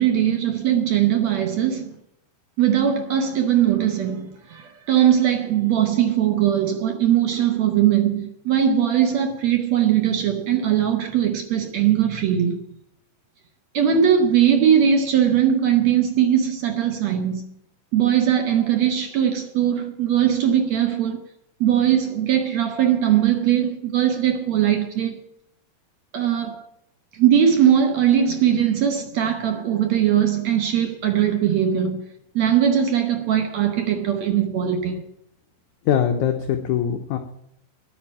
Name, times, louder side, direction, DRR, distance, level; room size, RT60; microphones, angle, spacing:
voice 1, 0.0-2.0 2.6-12.6 13.7-17.4 17.9-21.2 21.6-25.2 26.1-26.6 27.1-32.0 32.3-35.0, right 9 dB, 70° right, 1.6 m, -20 dB
voice 2, 35.9-37.2, left 9 dB, 75° left, 1.9 m, -22 dB
10.0 x 8.8 x 8.6 m
omnidirectional pair, 4.4 m